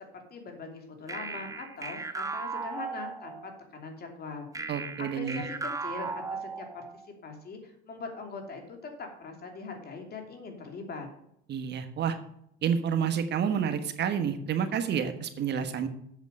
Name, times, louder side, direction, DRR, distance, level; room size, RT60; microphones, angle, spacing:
voice 1, 0.1-4.5 5.0-6.8 7.2-11.1, left 4 dB, 50° left, 4 dB, 2.9 m, -41 dB
sound 1, 1.1-3.6 4.5-7.1, right 4 dB, 15° right, 1.0 m, -37 dB
voice 2, 4.7-5.4 11.5-12.2 12.6-15.9, right 7 dB, 55° right, 8 dB, 1.3 m, -29 dB
8.2 x 7.5 x 5.4 m, 0.74 s
supercardioid pair, 90°, 21 cm